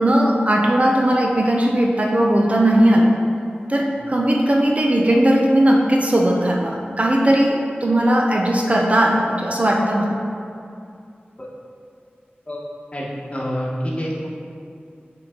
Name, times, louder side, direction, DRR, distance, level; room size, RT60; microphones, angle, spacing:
voice 1, 0.0-3.1 3.7-10.2, right 1 dB, 35° right, 0 dB, 0.6 m, -18 dB
voice 2, 12.9-14.3, equal, 35° left, -5 dB, 1.3 m, -27 dB
6.9 x 3.9 x 3.7 m, 2.5 s
wide cardioid pair, 70°, 4 cm